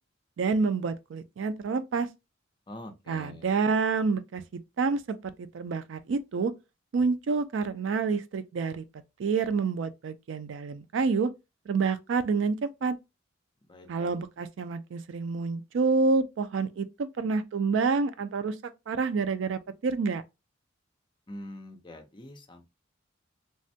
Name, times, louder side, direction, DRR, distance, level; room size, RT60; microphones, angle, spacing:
voice 1, 0.4-2.1 3.1-4.4 4.8-6.5 6.9-8.8 9.2-11.3 11.7-12.9 13.9-18.6 18.9-20.2, right 4 dB, 65° right, 0.4 m, -28 dB
voice 2, 2.7-3.5 13.7-14.2 21.3-22.7, left 1 dB, 25° left, 0.5 m, -44 dB
3.3 x 2.1 x 2.6 m
head